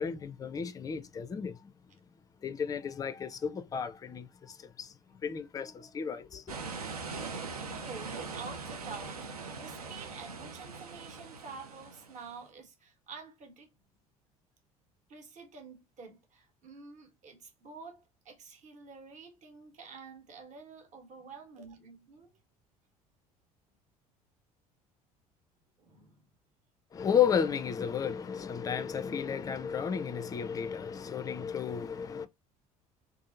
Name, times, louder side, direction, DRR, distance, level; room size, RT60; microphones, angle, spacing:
voice 1, 0.0-1.6 2.4-4.9 5.2-6.4 26.9-32.3, left 7 dB, 20° left, 0.4 m, -33 dB
sound 1, 6.5-12.4, right 4 dB, 85° right, 0.5 m, -41 dB
voice 2, 7.7-9.3 9.6-13.7 15.1-22.3 25.8-26.2, right 4 dB, 40° right, 1.0 m, -48 dB
2.7 x 2.5 x 2.3 m
figure-of-eight pair, 60°, 19 cm